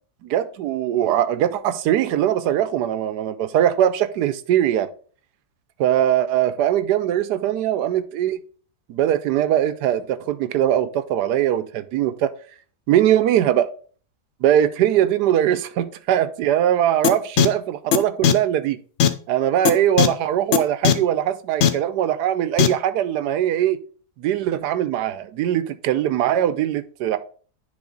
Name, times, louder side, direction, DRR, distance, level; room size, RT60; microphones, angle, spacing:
voice 1, 0.2-4.9 5.8-8.4 8.9-12.3 12.9-13.7 14.4-18.8 19.3-23.8 24.2-27.2, right 11 dB, 90° right, 1.2 m, -21 dB
sound 1, 17.0-17.1 17.4-17.5 17.9-18.0 18.2-18.3 19.0-19.1 19.6-19.7 20.0-20.1 20.5-20.6 20.8-20.9 21.6-21.7 22.6-22.7, left 9 dB, 60° left, 0.8 m, -15 dB
9.8 x 3.6 x 3.8 m
omnidirectional pair, 1.7 m